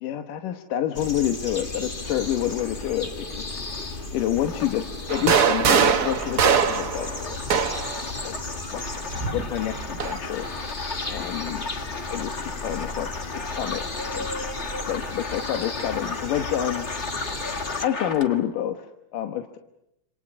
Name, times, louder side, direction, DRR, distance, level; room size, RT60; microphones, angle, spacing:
voice 1, 0.0-3.6 4.1-4.8 5.1-7.8 8.2-8.4 8.7-11.7 12.1-13.1 13.5-13.8 14.1-14.3 14.9-16.9 17.8-18.9 19.1-19.6, left 11 dB, 90° left, 6 dB, 2.8 m, -28 dB
sound 1, 0.9-17.9, left 2 dB, 25° left, 1.2 m, -35 dB
sound 2, 1.9-18.5, left 3 dB, 40° left, 0.9 m, -36 dB
sound 3, 5.1-8.0 9.1-10.2, right 6 dB, 75° right, 0.9 m, -22 dB
28.5 x 27.0 x 6.2 m, 0.84 s
omnidirectional pair, 3.7 m